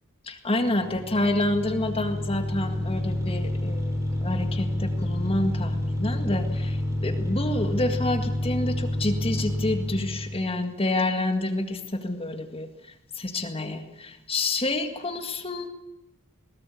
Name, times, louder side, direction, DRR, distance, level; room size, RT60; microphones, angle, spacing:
voice 1, 0.2-15.7, left 2 dB, 25° left, 6 dB, 1.9 m, -28 dB
sound 1, 0.6-10.5, left 1 dB, 15° right, 3.2 m, -29 dB
20.0 x 19.0 x 8.5 m, 0.89 s
head